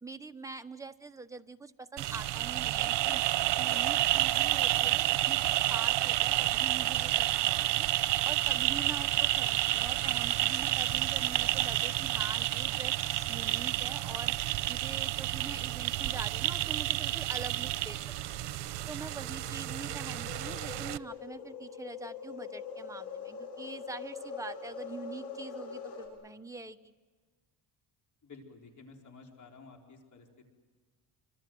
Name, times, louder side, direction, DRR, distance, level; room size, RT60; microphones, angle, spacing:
voice 1, 0.0-3.2 3.5-5.4 5.7-7.9 8.2-14.3 14.7-18.0 18.9-26.9, right 3 dB, 10° right, 7 dB, 0.9 m, -44 dB
sound 1, 2.0-21.0, right 15 dB, 85° right, 0.9 m, -30 dB
sound 2, 17.0-26.1, left 6 dB, 75° left, 7.2 m, -44 dB
voice 2, 28.2-30.4, left 4 dB, 45° left, 2 dB, 4.4 m, -53 dB
25.5 x 25.5 x 7.8 m, 1.4 s
cardioid pair, 125°, 42 cm